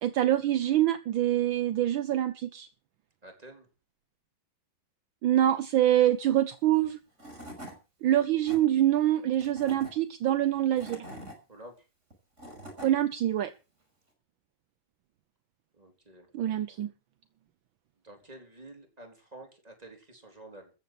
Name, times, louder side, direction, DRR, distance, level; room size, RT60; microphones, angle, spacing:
voice 1, 0.0-2.7 5.2-7.0 8.0-11.0 12.8-13.5 16.3-16.9, right 12 dB, 70° right, 12 dB, 1.6 m, -25 dB
voice 2, 3.2-3.7 11.5-11.9 15.7-16.3 18.0-20.7, right 1 dB, 15° right, 3 dB, 4.1 m, -49 dB
Tools / Wood, 6.8-6.9 7.2-7.8 8.2-8.6 9.3-9.9 10.5-11.4 12.1-12.9, equal, 35° right, 6.0 m, -44 dB
14.0 x 8.4 x 7.7 m, 0.33 s
omnidirectional pair, 2.3 m